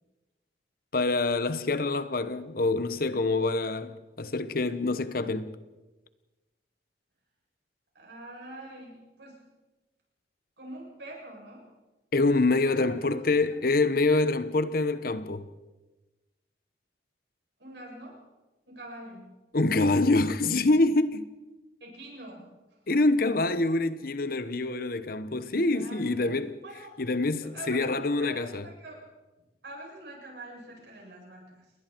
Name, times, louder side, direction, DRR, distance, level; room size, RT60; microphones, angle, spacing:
voice 1, 0.9-5.6 12.1-15.5 19.5-21.3 22.9-26.6 27.0-28.6, left 2 dB, 55° left, 1.1 m, -26 dB
voice 2, 7.9-9.4 10.6-11.7 12.6-13.2 13.5-13.6 17.6-18.2 18.7-19.3 21.8-22.5 22.9-23.0 25.7-26.4 26.6-27.0 27.4-29.1 29.6-31.7, right 1 dB, 75° right, 8.0 m, -45 dB
29.5 x 21.0 x 4.6 m
head